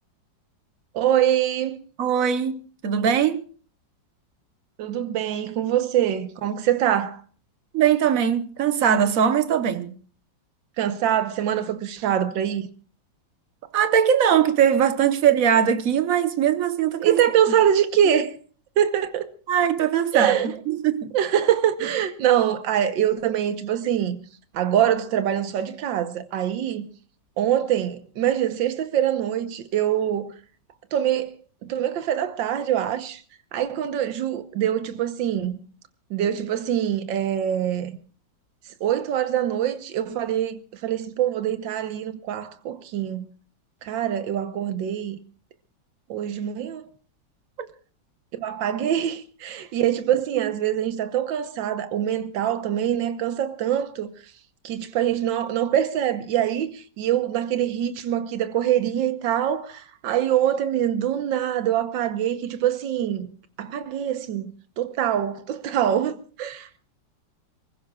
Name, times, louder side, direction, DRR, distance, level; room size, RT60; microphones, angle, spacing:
voice 1, 0.9-1.8 4.8-7.2 10.8-12.7 17.0-18.4 18.8-19.3 20.1-20.5 21.1-24.2 24.5-26.9 27.4-30.3 30.9-31.3 31.6-33.2 33.5-35.6 36.1-37.9 38.8-43.2 43.8-45.2 46.1-46.8 48.4-54.1 54.6-63.3 63.6-66.8, right 10 dB, 85° right, 1.7 m, -24 dB
voice 2, 2.0-3.4 7.7-9.9 13.7-17.2 19.5-20.4 20.7-21.1, right 8 dB, 55° right, 1.3 m, -21 dB
29.0 x 15.5 x 2.4 m
omnidirectional pair, 2.0 m